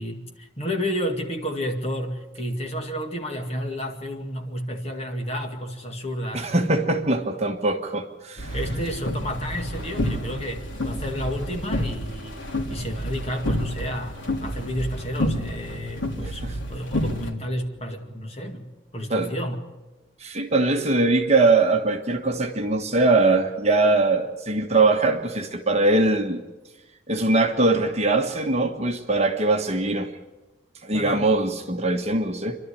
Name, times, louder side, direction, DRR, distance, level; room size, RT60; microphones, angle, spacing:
voice 1, 0.0-6.5 8.5-12.4 12.7-16.4 16.7-19.6 30.9-31.3, equal, 30° left, 3 dB, 2.2 m, -31 dB
voice 2, 6.3-8.5 16.2-16.5 19.1-19.3 20.2-26.4 27.1-30.1 30.8-32.6, right 2 dB, 30° right, 4 dB, 1.5 m, -22 dB
sound 1, 8.4-17.3, left 1 dB, 75° left, 3.5 m, -29 dB
27.0 x 12.0 x 10.0 m, 1.1 s
head